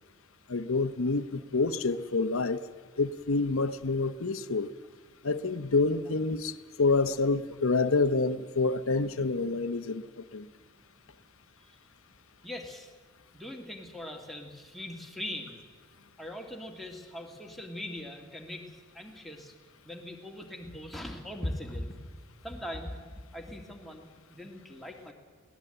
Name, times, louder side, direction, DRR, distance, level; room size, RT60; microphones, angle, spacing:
voice 1, 0.5-2.6 3.0-4.7 5.2-10.5, left 3 dB, 70° left, 0.9 m, -28 dB
voice 2, 12.4-12.9 13.3-15.6 16.2-19.5 19.8-22.0 22.4-25.1, left 1 dB, ahead, 2.3 m, -40 dB
22.0 x 18.0 x 9.1 m
head